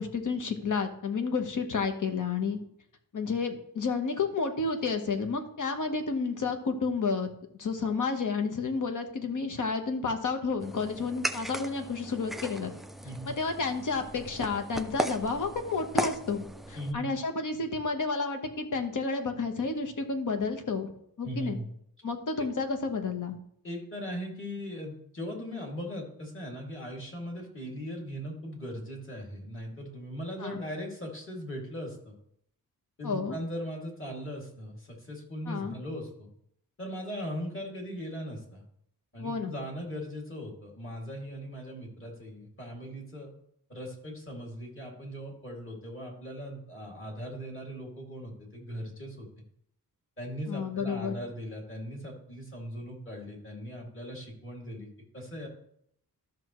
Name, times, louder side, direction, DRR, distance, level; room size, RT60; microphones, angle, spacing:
voice 1, 0.0-2.6 3.1-7.3 7.6-12.7 13.2-20.9 21.2-21.6 22.0-23.4 30.4-30.6 33.0-33.4 35.5-35.7 39.2-39.5 50.5-51.1, left 4 dB, 55° left, 6 dB, 1.2 m, -31 dB
sound 1, 10.6-16.9, equal, ahead, 0.3 m, -37 dB
voice 2, 16.7-17.1 21.2-21.7 22.4-22.5 23.6-32.2 33.0-36.3 36.8-38.6 39.1-43.3 43.7-49.3 50.2-55.5, equal, 35° left, -1 dB, 2.5 m, -39 dB
13.0 x 6.1 x 3.1 m, 0.71 s
wide cardioid pair, 130°, 37 cm